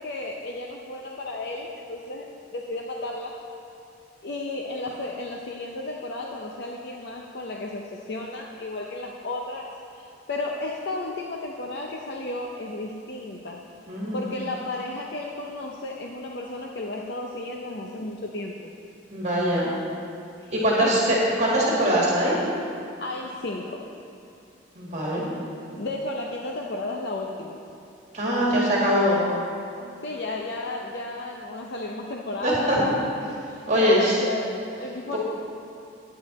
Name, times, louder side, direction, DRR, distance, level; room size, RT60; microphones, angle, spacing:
voice 1, 0.0-2.3 2.5-3.3 4.2-9.7 9.9-13.6 14.1-18.7 19.6-19.8 20.4-20.5 20.8-21.2 23.0-23.8 25.8-27.6 30.0-35.2, left 2 dB, 55° left, -1 dB, 0.6 m, -33 dB
voice 2, 13.9-14.2 19.1-19.7 20.5-22.4 24.8-25.2 28.1-29.2 32.4-32.8 33.7-34.1 35.1-35.2, equal, 35° right, -5 dB, 1.9 m, -22 dB
11.0 x 9.4 x 4.2 m, 2.6 s
head